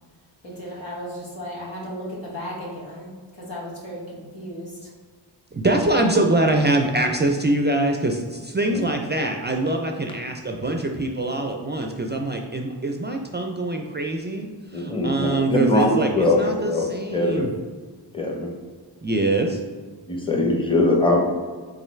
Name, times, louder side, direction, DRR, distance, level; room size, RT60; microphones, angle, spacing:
voice 1, 0.4-3.1 3.4-4.9, equal, 80° left, -5 dB, 1.4 m, -35 dB
voice 2, 5.5-17.5 19.0-19.6, right 2 dB, 25° right, 3 dB, 0.3 m, -24 dB
voice 3, 14.7-16.9 17.1-17.5 18.1-18.5 20.1-21.2, left 2 dB, 10° left, 0 dB, 0.7 m, -21 dB
3.8 x 3.2 x 3.1 m, 1.5 s
cardioid pair, 55°, 44 cm